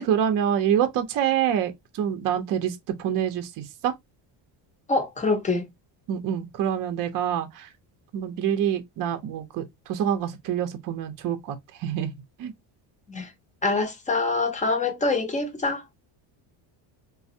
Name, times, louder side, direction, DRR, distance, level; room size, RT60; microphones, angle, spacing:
voice 1, 0.0-3.9 6.1-7.7 8.1-12.1 12.4-12.5, right 9 dB, 45° right, 0.5 m, -26 dB
voice 2, 4.9-5.7 13.1-13.3 13.6-15.8, left 3 dB, 15° left, 0.5 m, -25 dB
3.2 x 2.0 x 2.6 m
cardioid pair, 135°, 46 cm